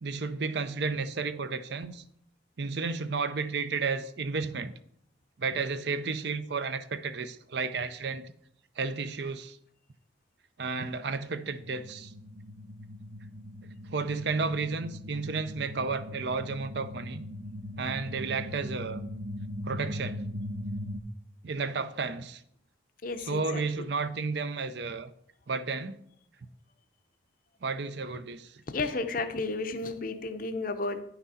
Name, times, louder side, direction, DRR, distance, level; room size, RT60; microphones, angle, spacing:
voice 1, 0.0-2.0 2.6-4.7 5.4-8.3 8.8-9.6 10.6-12.1 13.6-17.2 17.8-19.0 19.6-20.2 21.4-22.4 23.2-25.1 25.5-26.0 27.6-28.6, right 4 dB, 60° right, 0.5 m, -32 dB
sound 1, 11.6-21.0, left 1 dB, 85° right, 0.9 m, -40 dB
voice 2, 23.0-23.6 28.7-31.0, left 3 dB, 45° left, 0.6 m, -32 dB
9.6 x 6.0 x 4.2 m
head